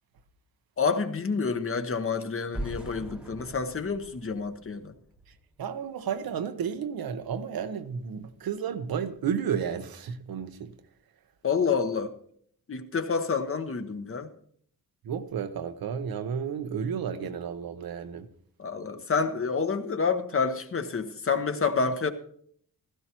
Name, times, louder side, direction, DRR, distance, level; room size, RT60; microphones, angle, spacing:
voice 1, 0.8-4.9 11.4-12.1 12.7-14.3 17.2-17.3 18.6-22.1, left 5 dB, 40° left, 1.1 m, -28 dB
sound 1, 2.5-5.5, right 1 dB, 5° right, 1.1 m, -40 dB
voice 2, 5.6-10.7 15.0-18.3, right 7 dB, 80° right, 1.0 m, -32 dB
16.0 x 13.5 x 3.0 m
wide cardioid pair, 125°, 35 cm